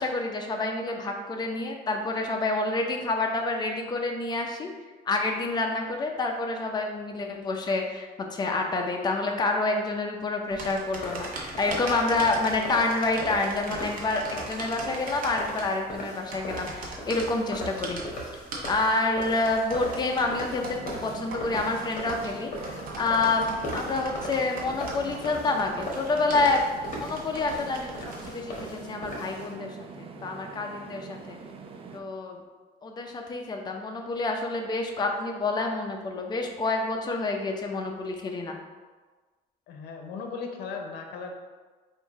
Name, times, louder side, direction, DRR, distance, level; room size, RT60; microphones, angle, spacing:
voice 1, 0.0-4.7 5.1-18.0 18.7-26.6 26.9-29.7 30.0-31.4 31.9-32.4 32.8-38.6, left 3 dB, 25° left, 2 dB, 0.6 m, -28 dB
sound 1, 10.5-28.3, right 2 dB, 55° right, 1.0 m, -40 dB
sound 2, 11.0-29.5, equal, 50° left, 1.2 m, -39 dB
sound 3, 20.1-32.0, right 4 dB, 35° right, 0.4 m, -44 dB
voice 2, 39.7-41.4, left 4 dB, 75° left, 3 dB, 0.7 m, -37 dB
3.5 x 2.6 x 4.6 m, 1.3 s
cardioid pair, 110°, 17 cm